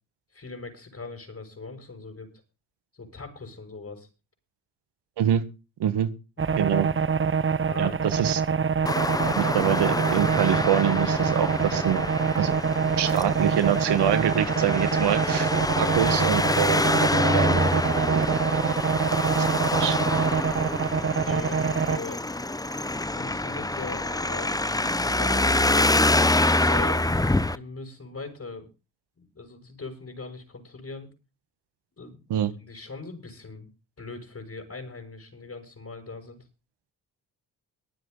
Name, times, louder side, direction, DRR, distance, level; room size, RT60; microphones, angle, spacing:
voice 1, 0.3-2.3 2.9-4.1 6.4-6.7 7.6-8.0 15.7-16.3 21.1-22.2 23.1-24.7 24.9-27.0 27.5-28.7 29.2-31.1 32.0-32.2 32.6-33.7 34.0-36.4, left 3 dB, 35° left, 3 dB, 6.4 m, -40 dB
voice 2, 5.8-6.1 6.6-6.9 7.8-8.4 9.3-12.0 12.3-12.5 13.0-15.5 15.8-16.8 17.3-17.6 17.9-18.4 19.8-20.0 32.3-32.5, right 10 dB, 65° right, 12 dB, 1.8 m, -25 dB
sound 1, 6.4-22.0, right 6 dB, 30° right, 0.9 m, -25 dB
Traffic noise roadway noise, 8.9-27.6, left 2 dB, 10° left, 1.0 m, -26 dB
23.5 x 7.9 x 3.9 m, 0.31 s
hypercardioid pair, 50°, 44 cm